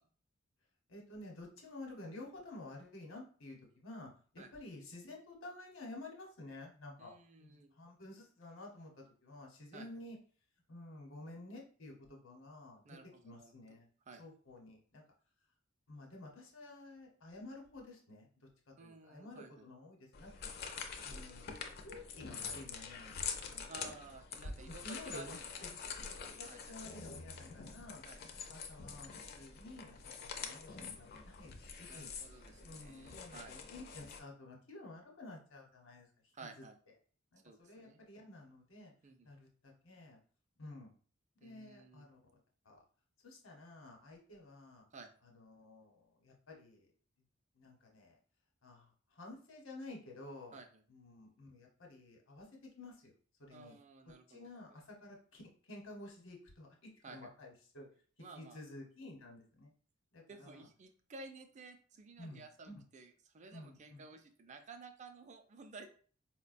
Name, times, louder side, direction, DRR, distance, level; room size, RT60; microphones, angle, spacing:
voice 1, 0.9-7.1 7.4-10.2 10.7-13.0 13.2-13.9 14.2-15.0 15.9-20.5 21.0-23.1 23.5-23.7 24.6-28.0 28.5-31.5 31.8-36.1 36.6-36.7 37.3-38.9 39.2-40.2 40.6-40.9 41.4-42.2 42.6-42.8 43.2-44.9 45.2-46.9 47.5-48.2 48.6-50.6 50.9-53.1 53.4-53.8 54.3-57.9 58.3-59.7 60.1-60.7 62.2-62.8 63.5-64.0, left 2 dB, 80° left, 1 dB, 0.9 m, -52 dB
voice 2, 7.0-7.7 9.7-9.9 12.8-13.8 14.1-14.2 18.8-19.6 23.7-25.9 26.4-26.8 28.0-28.2 31.8-33.6 36.3-36.8 37.4-38.0 39.0-39.3 41.4-42.1 44.9-45.1 50.5-50.8 53.5-54.8 57.0-57.3 58.2-58.6 60.3-65.9, right 3 dB, 35° right, 6 dB, 0.4 m, -54 dB
sound 1, 20.1-34.2, left 5 dB, 50° left, 0.4 m, -46 dB
4.5 x 2.2 x 2.4 m, 0.44 s
head